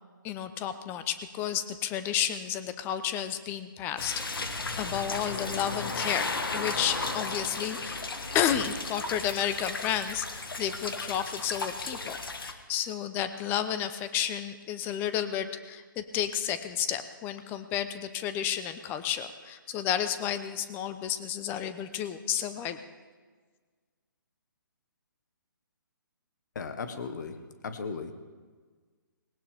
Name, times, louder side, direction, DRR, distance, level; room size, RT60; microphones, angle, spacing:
voice 1, 0.2-6.3 6.5-22.8, left 10 dB, 15° left, 11 dB, 0.7 m, -32 dB
sound 1, 4.0-12.5, left 3 dB, 80° left, 1.6 m, -35 dB
voice 2, 26.5-28.1, left 5 dB, 55° left, 9 dB, 1.5 m, -37 dB
19.0 x 18.5 x 3.6 m, 1.5 s
hypercardioid pair, 150°, 12 cm